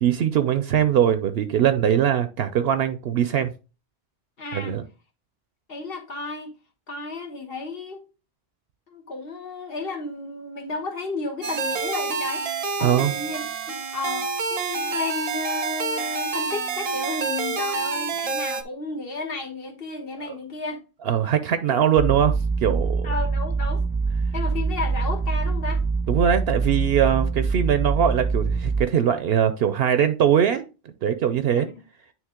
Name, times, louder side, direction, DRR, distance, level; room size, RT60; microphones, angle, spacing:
voice 1, 0.0-3.5 4.5-4.8 12.8-13.1 20.3-20.4 21.0-23.1 26.1-30.6 31.0-31.7, right 9 dB, 75° right, 0.8 m, -21 dB
voice 2, 4.4-4.7 5.7-6.5 6.9-8.0 8.9-12.4 12.8-20.8 23.0-23.8 24.3-25.8 31.5-31.7, left 3 dB, 65° left, 1.4 m, -33 dB
sound 1, 11.4-18.6, right 5 dB, 45° right, 0.6 m, -28 dB
sound 2, 22.0-28.8, right 4 dB, 5° right, 0.8 m, -24 dB
9.2 x 3.5 x 3.6 m
omnidirectional pair, 1.1 m